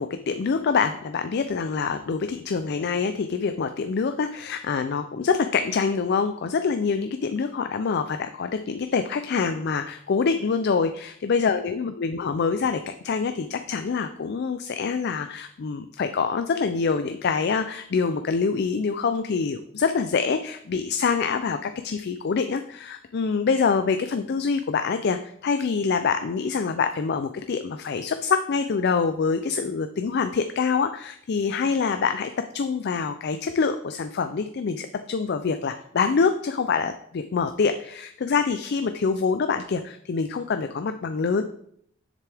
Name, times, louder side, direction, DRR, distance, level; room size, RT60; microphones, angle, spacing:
voice 1, 0.0-41.4, left 5 dB, 55° left, 9 dB, 0.4 m, -25 dB
7.5 x 6.9 x 3.4 m, 0.68 s
head